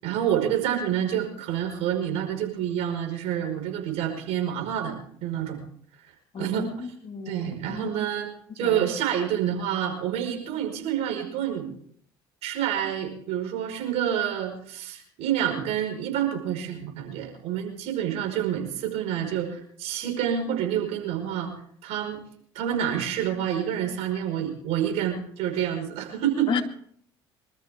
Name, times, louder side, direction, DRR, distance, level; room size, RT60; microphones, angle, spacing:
voice 1, 0.0-5.6 6.4-6.7 7.2-8.3 8.5-11.7 12.4-21.5 21.8-22.2 22.5-26.5, right 10 dB, 65° right, 3 dB, 5.3 m, -28 dB
voice 2, 6.3-8.0 8.6-8.8 26.5-26.6, left 5 dB, 45° left, 4 dB, 2.4 m, -33 dB
25.5 x 13.5 x 3.7 m, 0.64 s
hypercardioid pair, 70°, 12 cm